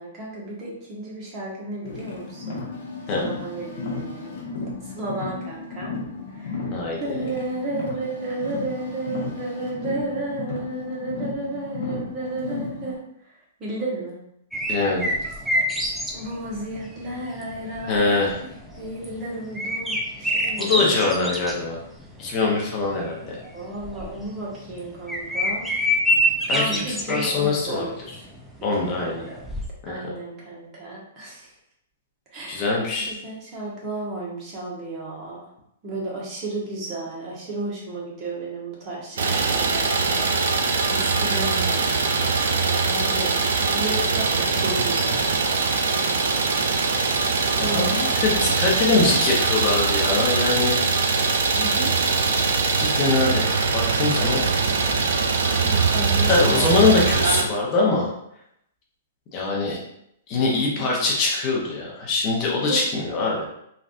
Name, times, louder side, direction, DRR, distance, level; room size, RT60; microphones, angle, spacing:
voice 1, 0.0-2.6 3.1-4.3 4.8-5.9 6.3-6.7 7.0-13.0 13.6-14.2 16.1-18.5 18.7-21.2 23.5-25.7 26.5-28.3 28.8-29.4 29.9-31.5 32.3-32.7 32.9-35.4 35.8-45.3 47.6-48.6 51.5-51.9 55.5-56.8 60.5-60.9 62.6-62.8, right 2 dB, 30° right, -5 dB, 1.2 m, -33 dB
Car, 1.8-12.9, left 3 dB, 65° left, 0.9 m, -34 dB
voice 2, 6.7-7.3 14.7-15.1 17.8-18.3 20.6-21.8 22.2-23.4 26.5-26.8 27.1-27.9 28.6-29.2 29.8-30.1 32.5-33.1 47.6-50.8 52.8-54.4 56.3-58.1 59.3-59.8 60.3-63.5, left 3 dB, 35° left, -2 dB, 0.8 m, -23 dB
sound 1, 14.5-29.7, equal, ahead, 0.4 m, -27 dB
Idling, 39.2-57.4, right 4 dB, 75° right, 0.4 m, -22 dB
3.3 x 2.5 x 2.5 m, 0.75 s
hypercardioid pair, 130°, 0 cm